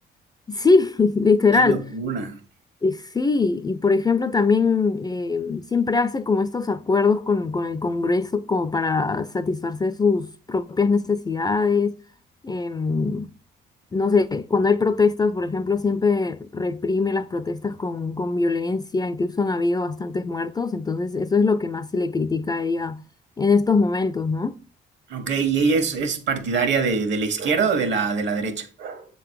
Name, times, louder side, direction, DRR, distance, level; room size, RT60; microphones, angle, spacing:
voice 1, 0.5-1.8 2.8-12.0 12.4-13.3 13.9-23.0 23.4-24.6, left 4 dB, 20° left, 0.4 m, -22 dB
voice 2, 1.5-2.4 25.1-29.1, right 5 dB, 65° right, 1.5 m, -24 dB
7.4 x 3.9 x 4.7 m
cardioid pair, 90°, 20 cm